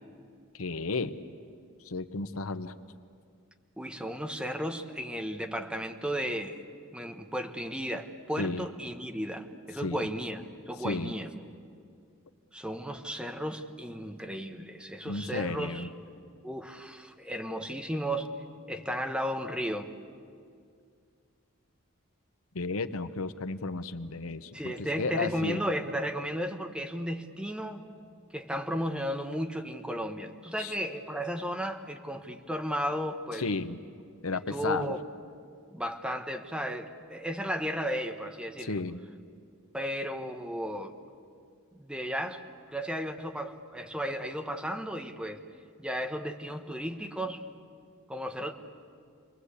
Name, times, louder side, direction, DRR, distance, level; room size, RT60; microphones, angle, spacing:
voice 1, 0.5-1.2 1.8-2.7 8.4-8.7 9.8-10.1 10.8-11.1 15.0-15.9 22.5-25.6 30.6-30.7 33.4-33.8 34.2-34.9 38.6-39.0, left 3 dB, 85° left, 11 dB, 0.9 m, -33 dB
voice 2, 3.8-6.6 6.9-11.3 12.5-15.9 16.4-18.3 18.7-19.9 24.5-27.8 28.3-33.4 34.5-35.0 35.7-38.8 39.7-40.9 41.7-45.4 45.8-47.4 48.1-48.5, equal, 5° right, 4 dB, 1.2 m, -34 dB
29.0 x 22.0 x 8.4 m, 2.3 s
head